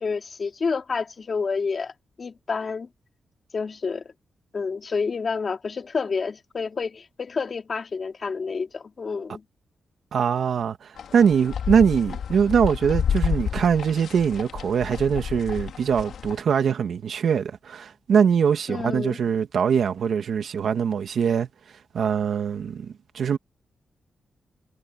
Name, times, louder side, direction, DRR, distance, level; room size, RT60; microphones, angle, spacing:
voice 1, 0.0-1.9 2.2-2.9 3.5-4.1 4.5-9.4 18.7-19.2, left 5 dB, 45° left, 3.2 m, -29 dB
voice 2, 10.1-21.5 21.9-23.4, right 7 dB, 70° right, 2.1 m, -22 dB
sound 1, 11.0-16.4, left 8 dB, 75° left, 4.2 m, -30 dB
cardioid pair, 110°, 0 cm